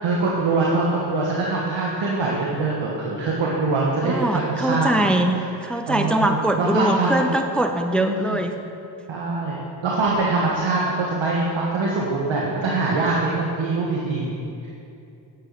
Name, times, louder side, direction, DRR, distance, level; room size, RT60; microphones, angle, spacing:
voice 1, 0.0-4.9 5.9-7.3 8.0-8.4 9.1-9.6 9.8-14.3, right 3 dB, 80° right, -4 dB, 1.4 m, -23 dB
voice 2, 4.0-8.5, right 1 dB, ahead, 6 dB, 0.6 m, -22 dB
9.4 x 5.8 x 7.2 m, 2.7 s
cardioid pair, 55°, 46 cm